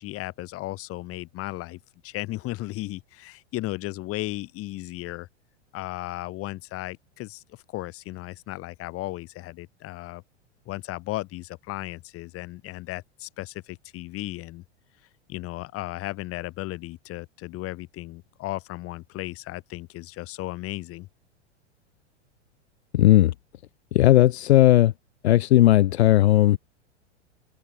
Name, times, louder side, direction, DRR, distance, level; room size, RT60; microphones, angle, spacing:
voice 1, 0.0-5.3 5.7-10.2 10.6-14.6 15.3-21.1, left 18 dB, 40° left, 6.6 m, -35 dB
voice 2, 22.9-23.3 23.9-24.9 25.2-26.6, left 14 dB, 60° left, 1.3 m, -17 dB
figure-of-eight pair, 95°, 36 cm